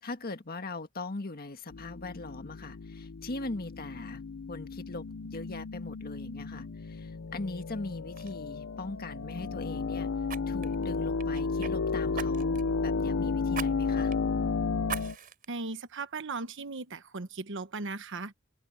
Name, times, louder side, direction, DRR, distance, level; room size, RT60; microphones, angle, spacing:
voice 1, 0.0-4.2 4.5-5.0 5.3-10.1 10.5-14.1, left 2 dB, 45° left, 1.7 m, -40 dB
sound 1, 1.7-15.2, left 4 dB, 65° left, 0.6 m, -33 dB
Fire, 7.6-7.8 8.1-8.3 10.3-11.7 12.1-12.7 13.5-13.7 14.1-14.2 14.8-15.5 16.0-16.1, right 7 dB, 45° right, 3.9 m, -39 dB
voice 2, 15.5-18.4, right 3 dB, 60° right, 1.2 m, -37 dB
open air
head